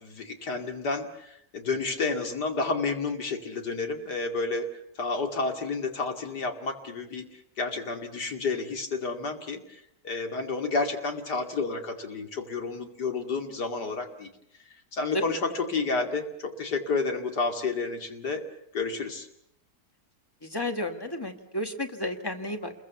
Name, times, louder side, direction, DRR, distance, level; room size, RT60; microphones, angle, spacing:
voice 1, 0.0-4.6 5.0-14.3 14.9-18.4 18.7-19.3, left 4 dB, 85° left, 4 dB, 3.1 m, -30 dB
voice 2, 20.4-22.7, left 1 dB, 15° left, 6 dB, 1.9 m, -32 dB
29.0 x 22.0 x 7.1 m, 0.75 s
omnidirectional pair, 1.7 m